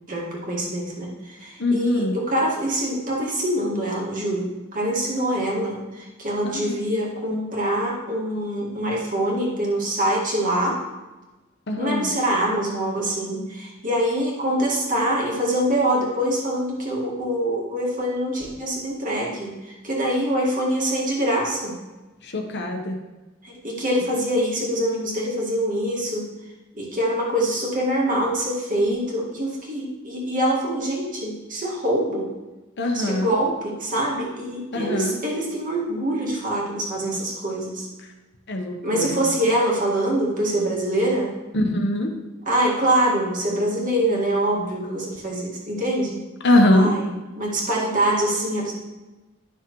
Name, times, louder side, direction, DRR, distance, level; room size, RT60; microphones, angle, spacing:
voice 1, 0.1-10.8 11.8-21.8 23.4-26.3 26.7-32.3 32.9-37.9 38.8-41.3 42.5-46.2 46.7-47.1 47.4-48.7, right 1 dB, 40° right, -4 dB, 1.9 m, -24 dB
voice 2, 1.6-2.1 6.4-6.8 11.7-12.1 22.2-23.0 32.8-33.3 34.7-35.2 38.5-39.2 41.5-42.1 46.4-46.9, left 1 dB, 55° left, 3 dB, 1.0 m, -22 dB
10.5 x 6.0 x 3.1 m, 1.1 s
head